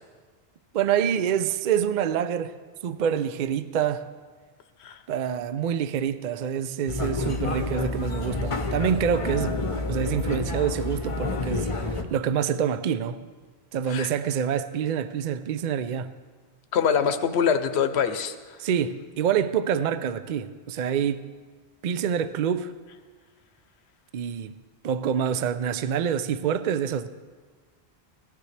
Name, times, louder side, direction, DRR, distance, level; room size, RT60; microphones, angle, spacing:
voice 1, 0.7-2.6 2.8-4.1 5.1-9.6 9.9-13.2 13.7-16.1 18.6-21.2 21.8-22.7 24.1-24.5 24.8-27.1, right 8 dB, 55° right, 0.6 m, -26 dB
sound 1, 6.9-12.0, left 2 dB, 35° left, 0.8 m, -29 dB
voice 2, 16.7-18.6, left 7 dB, 80° left, 1.0 m, -24 dB
17.5 x 12.0 x 3.3 m
omnidirectional pair, 1.1 m